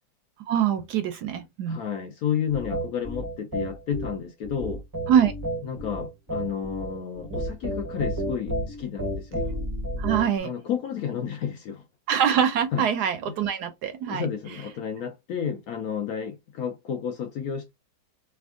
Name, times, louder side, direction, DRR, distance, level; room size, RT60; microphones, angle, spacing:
voice 1, 0.5-1.8 5.1-5.3 10.0-10.5 12.1-14.3, right 8 dB, 75° right, 1.0 m, -24 dB
voice 2, 1.7-4.8 5.6-9.4 10.4-11.8 12.7-12.8 13.3-13.4 14.1-17.7, left 8 dB, 65° left, 0.9 m, -31 dB
sound 1, 2.5-10.4, equal, 25° right, 0.5 m, -31 dB
3.4 x 2.2 x 3.5 m
omnidirectional pair, 2.0 m